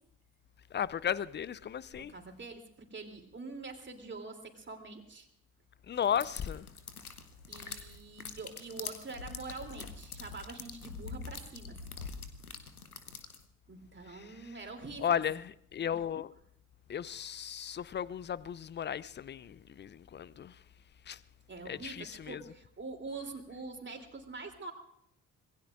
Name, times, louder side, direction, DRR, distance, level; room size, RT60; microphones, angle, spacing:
voice 1, 0.7-2.1 5.9-6.7 7.7-7.8 14.0-14.6 15.0-16.3 16.9-20.6 21.1-21.2 21.6-22.4, left 9 dB, 25° left, 0.5 m, -35 dB
voice 2, 2.1-5.3 7.5-11.8 13.7-15.2 21.5-24.7, right 3 dB, 25° right, 3.1 m, -45 dB
sound 1, 6.0-13.5, left 5 dB, 90° left, 0.9 m, -45 dB
26.0 x 20.0 x 2.5 m
figure-of-eight pair, 45°, 43 cm